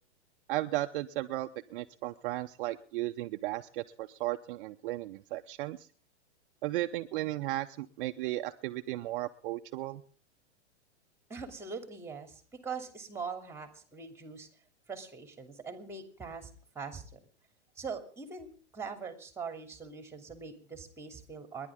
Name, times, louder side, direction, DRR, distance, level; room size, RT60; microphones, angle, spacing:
voice 1, 0.5-5.9 6.6-10.0, right 16 dB, 50° right, 7 dB, 0.9 m, -35 dB
voice 2, 11.3-14.5 14.9-16.5 16.7-17.2 17.8-21.7, right 5 dB, 5° right, 8 dB, 2.8 m, -42 dB
29.5 x 11.0 x 3.6 m, 0.43 s
hypercardioid pair, 140°, 35 cm